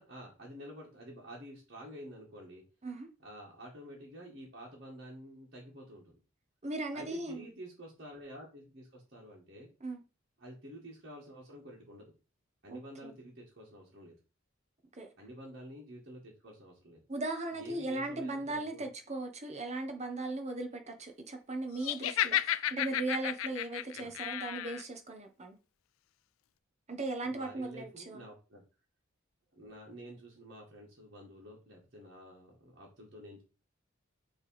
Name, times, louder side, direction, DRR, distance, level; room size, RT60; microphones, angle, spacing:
voice 1, 0.0-2.6 3.2-6.2 6.9-9.7 10.4-12.1 12.6-14.1 15.2-17.0 17.5-18.8 24.0-24.1 27.3-28.6 29.5-33.4, equal, 50° right, 2.0 m, -49 dB
voice 2, 6.6-7.5 9.8-10.0 12.7-13.1 15.0-15.1 17.1-25.6 26.9-28.3, right 2 dB, 35° right, 1.2 m, -38 dB
Laughter, 21.8-24.8, left 12 dB, 80° left, 0.4 m, -32 dB
6.5 x 3.5 x 4.9 m
head